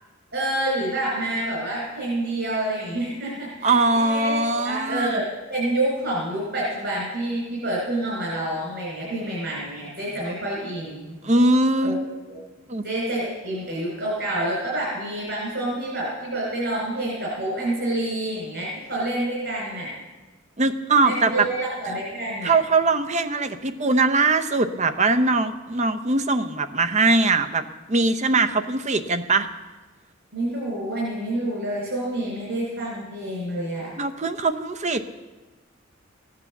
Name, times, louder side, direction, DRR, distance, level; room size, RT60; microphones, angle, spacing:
voice 1, 0.3-11.2 11.8-12.0 12.3-12.4 12.8-19.9 21.0-22.5 30.3-33.9, right 1 dB, 60° right, -5 dB, 4.6 m, -28 dB
voice 2, 3.6-5.2 11.2-12.1 12.7-12.8 20.6-21.5 22.4-27.6 27.9-29.5 34.0-35.0, right 3 dB, 35° right, 9 dB, 0.8 m, -21 dB
16.0 x 9.6 x 7.2 m, 1.2 s
head